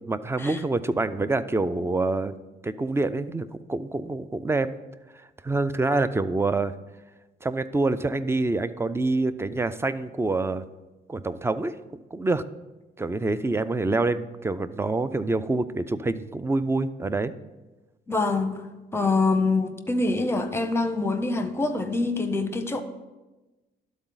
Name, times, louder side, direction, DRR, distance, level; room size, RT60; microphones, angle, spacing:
voice 1, 0.1-2.3 2.6-4.7 5.4-6.7 7.4-10.7 11.1-12.4 13.0-17.3, right 3 dB, 15° right, 14 dB, 0.3 m, -26 dB
voice 2, 18.1-18.6 18.9-22.8, left 3 dB, 10° left, 8 dB, 0.7 m, -25 dB
12.0 x 4.0 x 3.9 m, 1.1 s
cardioid pair, 90°, 20 cm